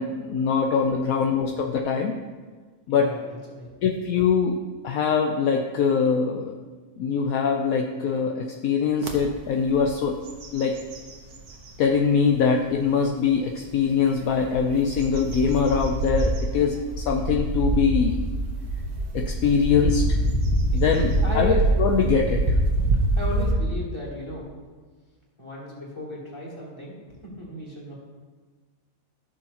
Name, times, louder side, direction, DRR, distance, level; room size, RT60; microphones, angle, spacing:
voice 1, 0.0-2.1 2.9-3.1 3.8-4.6 4.8-6.5 7.0-10.2 10.5-10.8 11.8-18.2 19.1-20.0 20.7-22.6, left 6 dB, 70° left, 2 dB, 1.0 m, -23 dB
voice 2, 2.9-3.7 20.7-21.6 23.1-24.5 25.4-26.9 27.2-27.9, left 1 dB, 20° left, -6 dB, 3.0 m, -35 dB
sound 1, 9.0-9.2 9.7-9.9 10.3-11.8 12.3-12.4 14.2-23.5, right 2 dB, 85° right, 1.5 m, -25 dB
14.5 x 6.5 x 2.9 m, 1.4 s
omnidirectional pair, 1.6 m